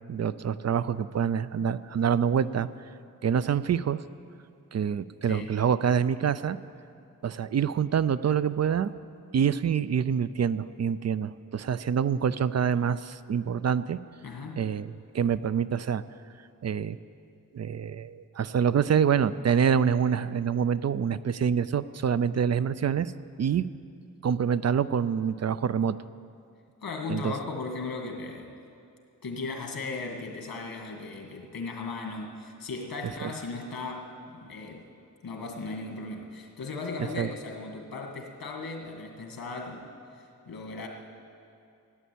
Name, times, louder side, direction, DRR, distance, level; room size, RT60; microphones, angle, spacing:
voice 1, 0.1-2.7 3.2-4.0 4.7-6.6 7.2-8.9 9.3-14.0 14.6-16.0 16.6-17.0 17.5-23.1 23.4-23.7 24.2-26.0 27.1-27.3 33.2-33.3 37.2-37.3, right 7 dB, 50° right, 15 dB, 0.4 m, -26 dB
voice 2, 14.2-14.7 26.8-28.6 29.2-34.9 35.2-39.9 40.5-40.9, left 3 dB, 75° left, 2 dB, 2.1 m, -37 dB
15.5 x 10.0 x 8.5 m, 2.5 s
wide cardioid pair, 155°, 35 cm